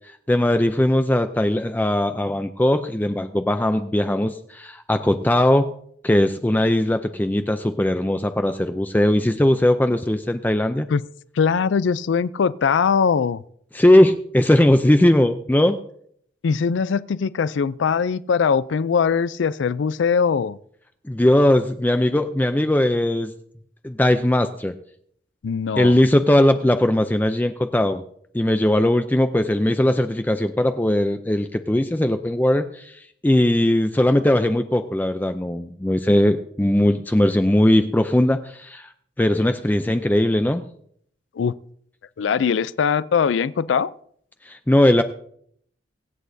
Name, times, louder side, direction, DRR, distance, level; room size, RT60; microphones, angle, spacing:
voice 1, 0.3-5.7 6.0-10.9 13.7-15.8 21.1-23.3 23.8-24.7 25.8-28.0 28.3-38.9 39.2-40.6 44.5-45.0, left 1 dB, 10° left, 0.4 m, -19 dB
voice 2, 11.3-13.4 16.4-20.6 25.4-26.0 41.4-41.5 42.2-43.9, left 6 dB, 80° left, 0.4 m, -21 dB
24.0 x 8.4 x 2.7 m
head